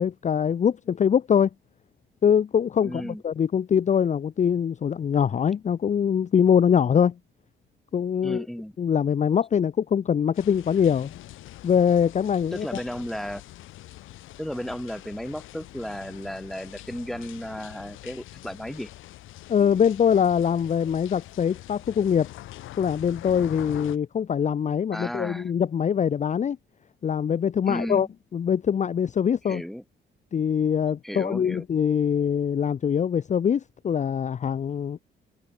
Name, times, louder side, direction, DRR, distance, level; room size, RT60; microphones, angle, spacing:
voice 1, 0.0-1.5 2.2-7.1 7.9-8.5 8.8-11.1 11.6-12.8 19.5-22.3 22.8-26.6 27.0-28.1 28.3-29.6 30.3-35.0, left 8 dB, 35° left, 0.6 m, -23 dB
voice 2, 2.8-3.2 8.2-8.7 12.5-13.4 14.4-18.9 24.9-25.5 27.7-28.1 29.4-29.8 31.0-31.6, equal, ahead, 2.3 m, -34 dB
sound 1, 10.3-24.0, left 16 dB, 90° left, 3.6 m, -44 dB
cardioid pair, 90°, 20 cm